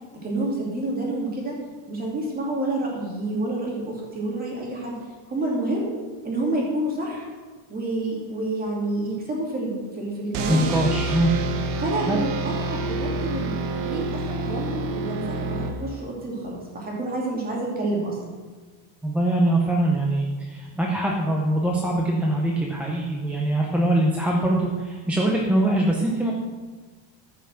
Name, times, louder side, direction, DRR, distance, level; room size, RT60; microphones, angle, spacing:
voice 1, 0.2-1.6 1.9-4.9 5.3-5.9 6.2-7.3 7.7-11.0 11.8-13.5 13.8-18.2, right 2 dB, 20° right, -2 dB, 2.6 m, -28 dB
sound 1, 10.3-16.2, right 3 dB, 45° right, 1.1 m, -28 dB
voice 2, 10.5-11.3 12.1-12.2 19.0-26.3, right 1 dB, 5° right, -2 dB, 0.4 m, -23 dB
14.0 x 5.7 x 6.3 m, 1.4 s
cardioid pair, 175°, 48 cm